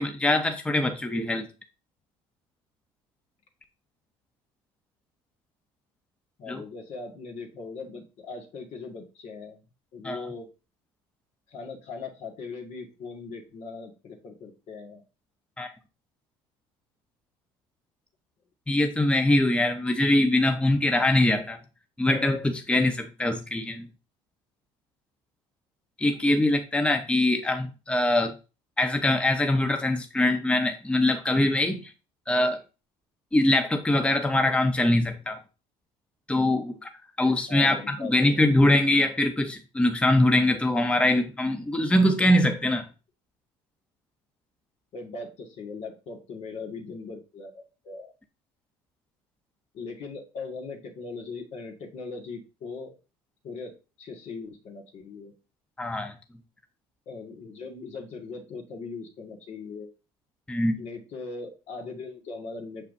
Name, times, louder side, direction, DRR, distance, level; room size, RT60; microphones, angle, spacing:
voice 1, 0.0-1.5 6.5-6.6 10.0-10.3 15.6-15.7 18.7-21.6 22.0-23.9 26.0-28.3 28.8-31.9 32.3-32.6 33.3-35.4 36.3-36.9 37.2-42.9 55.8-56.1 60.5-60.8, left 1 dB, 10° left, 0.8 m, -23 dB
voice 2, 6.4-9.6 9.9-10.5 11.5-15.0 37.5-38.6 44.9-48.1 49.7-53.0 53.4-53.7 54.0-55.3 57.1-59.9 60.8-62.9, left 4 dB, 60° left, 1.9 m, -39 dB
6.8 x 5.5 x 2.7 m
supercardioid pair, 85°, 13 cm